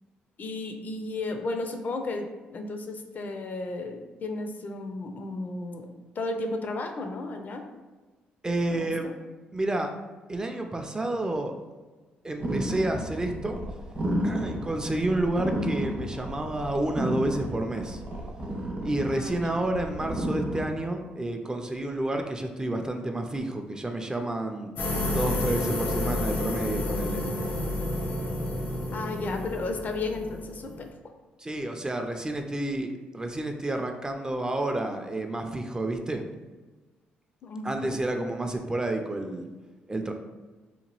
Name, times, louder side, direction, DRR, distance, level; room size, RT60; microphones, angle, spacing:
voice 1, 0.4-5.9 6.1-7.6 8.7-9.1 19.1-19.7 28.9-30.9 37.4-38.0, left 2 dB, 50° left, 5 dB, 0.4 m, -34 dB
voice 2, 8.4-9.1 9.5-9.9 10.3-11.5 12.2-13.6 14.2-18.0 18.8-24.7 25.0-27.3 31.4-36.2 37.6-39.5 39.9-40.1, right 1 dB, 20° right, 4 dB, 0.3 m, -30 dB
sound 1, 12.4-20.6, right 1 dB, 55° right, 0.8 m, -32 dB
sound 2, 24.8-30.9, left 1 dB, 80° left, 0.8 m, -30 dB
2.8 x 2.2 x 2.9 m, 1.3 s
supercardioid pair, 70°, 4 cm